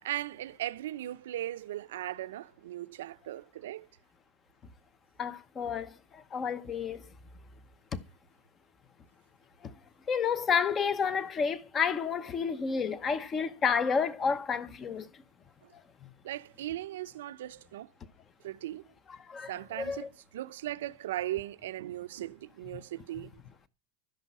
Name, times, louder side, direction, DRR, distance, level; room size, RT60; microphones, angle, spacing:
voice 1, 0.0-3.9 15.6-15.7 16.2-17.9 18.4-18.8 19.5-23.4, right 13 dB, 90° right, 0.7 m, -38 dB
voice 2, 5.2-7.0 7.9-8.0 9.6-9.7 10.1-15.1 19.3-19.5 19.8-20.1, left 6 dB, 20° left, 0.9 m, -30 dB
12.5 x 10.5 x 5.4 m
supercardioid pair, 175°, 0 cm